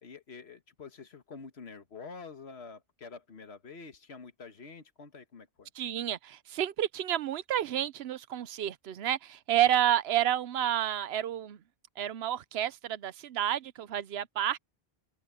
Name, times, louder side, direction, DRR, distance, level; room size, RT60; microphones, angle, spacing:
voice 1, 0.0-5.7, left 4 dB, 80° left, 1.7 m, -47 dB
voice 2, 5.8-11.6 12.0-14.6, right 11 dB, 75° right, 0.9 m, -30 dB
open air
omnidirectional pair, 1.1 m